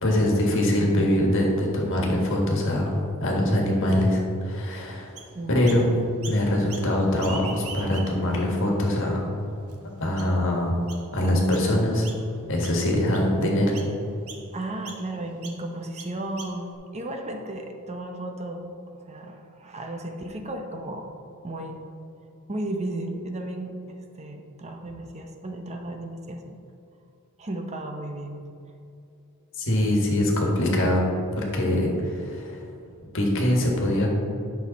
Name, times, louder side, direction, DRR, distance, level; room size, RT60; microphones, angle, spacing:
voice 1, 0.0-5.1 5.5-5.9 6.2-9.2 10.0-10.8 11.1-12.1 12.5-13.7 29.6-31.1 31.4-32.6 33.1-34.1, left 1 dB, 60° left, -1 dB, 1.7 m, -23 dB
Chirp tweet, 5.2-5.8 6.2-6.9 7.2-8.4 8.9-9.0 9.7-9.8 10.2-10.5 10.9-11.1 11.5-11.7 12.0-12.4 12.6-13.3 13.7-13.9 14.3-14.4 14.8-15.0 15.4-15.6 16.0-16.7, right 5 dB, 70° right, 1.1 m, -41 dB
voice 2, 14.5-21.1 21.4-21.8 22.5-26.6 27.4-28.3, right 1 dB, 30° right, 4 dB, 0.7 m, -34 dB
9.8 x 6.3 x 4.1 m, 2.6 s
head